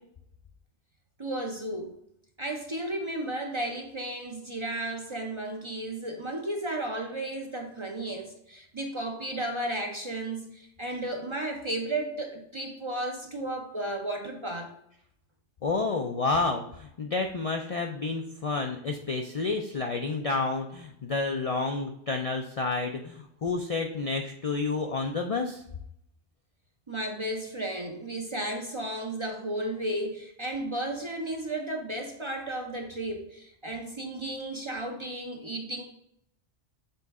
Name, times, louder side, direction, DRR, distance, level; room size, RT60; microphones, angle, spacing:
voice 1, 1.2-2.0 2.4-14.7 26.9-35.8, right 1 dB, 35° right, 2 dB, 0.6 m, -34 dB
voice 2, 15.6-25.6, left 3 dB, 50° left, 3 dB, 0.4 m, -30 dB
6.8 x 3.9 x 3.6 m, 0.75 s
omnidirectional pair, 1.2 m